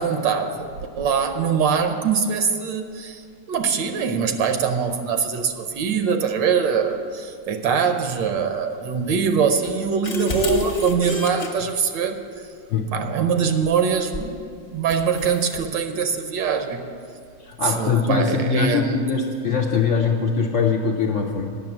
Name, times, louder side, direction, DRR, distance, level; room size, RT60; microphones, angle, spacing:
voice 1, 0.0-3.2 3.5-12.2 12.9-16.9 17.6-19.1, right 6 dB, 75° right, 7 dB, 1.4 m, -23 dB
sound 1, 9.6-11.5 14.1-14.4 14.9-15.6, left 1 dB, 40° left, 1.2 m, -28 dB
voice 2, 17.4-21.6, left 5 dB, 70° left, 2 dB, 0.7 m, -22 dB
9.5 x 6.7 x 8.8 m, 2.3 s
omnidirectional pair, 2.0 m